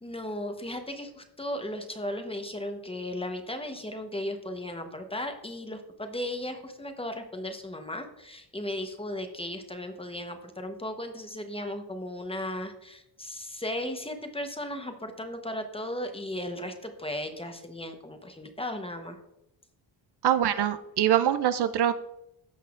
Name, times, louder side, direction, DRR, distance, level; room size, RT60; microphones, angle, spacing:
voice 1, 0.0-19.2, left 1 dB, 10° left, 6 dB, 0.9 m, -36 dB
voice 2, 20.2-21.9, right 10 dB, 60° right, 12 dB, 0.5 m, -24 dB
15.0 x 5.5 x 2.4 m, 0.86 s
cardioid pair, 105°, 47 cm